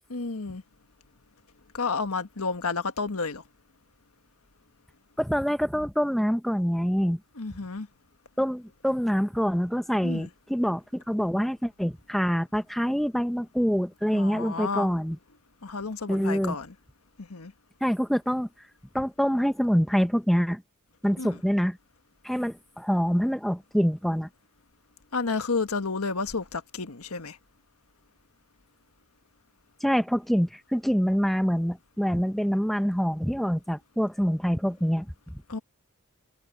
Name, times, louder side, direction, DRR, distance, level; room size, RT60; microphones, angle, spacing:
voice 1, 0.1-0.6 1.7-3.4 7.4-7.9 10.0-10.3 14.1-14.9 15.6-16.7 17.2-17.5 21.2-21.4 25.1-27.4 35.5-35.6, left 4 dB, 75° left, 1.5 m, -31 dB
voice 2, 5.2-7.2 8.4-15.2 16.1-16.5 17.8-18.5 18.9-20.6 21.0-21.8 22.2-24.3 29.8-35.3, equal, ahead, 0.7 m, -25 dB
head